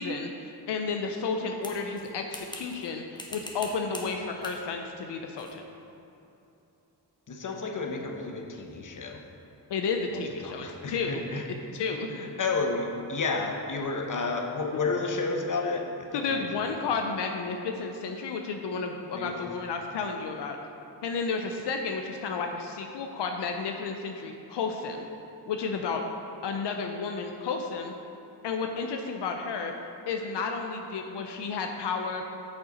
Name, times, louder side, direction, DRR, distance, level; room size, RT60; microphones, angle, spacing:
voice 1, 0.0-5.6 9.7-11.2 11.7-12.1 16.1-20.6 21.0-25.1 25.5-26.0 26.4-27.9 28.4-29.7 30.1-32.2, left 4 dB, 90° left, 3 dB, 0.6 m, -32 dB
sound 1, 1.6-2.9 3.2-4.1 4.4-4.6 5.4-5.6, left 1 dB, 10° left, 1.0 m, -42 dB
voice 2, 7.3-9.2 10.1-11.4 12.1-16.4 19.1-19.3, left 3 dB, 50° left, 2 dB, 0.9 m, -31 dB
6.7 x 5.6 x 5.0 m, 2.9 s
cardioid pair, 70°, 40 cm